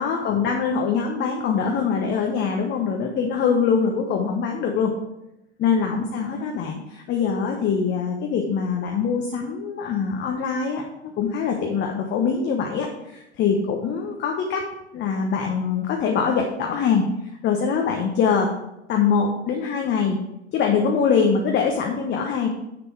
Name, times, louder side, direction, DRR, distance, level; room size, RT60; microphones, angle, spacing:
voice 1, 0.0-4.9 5.6-14.6 14.9-17.1 17.4-18.5 18.9-20.2 20.5-22.5, left 6 dB, 30° left, 2 dB, 1.1 m, -23 dB
7.2 x 6.7 x 4.7 m, 0.88 s
figure-of-eight pair, 85°, 34 cm